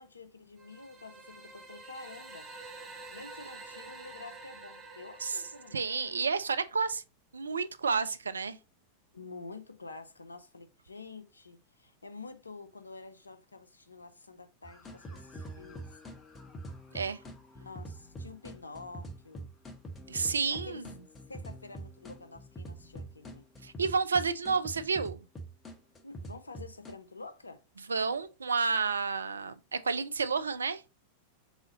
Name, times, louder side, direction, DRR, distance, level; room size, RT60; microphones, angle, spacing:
voice 1, 0.0-2.5 3.1-5.9 9.1-16.0 17.6-19.5 20.5-20.8 21.3-23.4 26.0-27.6, left 3 dB, 80° left, 0.6 m, -48 dB
sound 1, 0.6-6.5, right 3 dB, 30° right, 0.9 m, -49 dB
voice 2, 5.7-7.0 7.3-8.6 16.9-17.2 20.1-20.9 23.6-25.2 27.9-30.8, right 5 dB, 75° right, 0.3 m, -30 dB
sound 2, 14.6-26.9, right 1 dB, 20° left, 0.8 m, -45 dB
3.7 x 3.1 x 3.7 m
figure-of-eight pair, 90°, 0 cm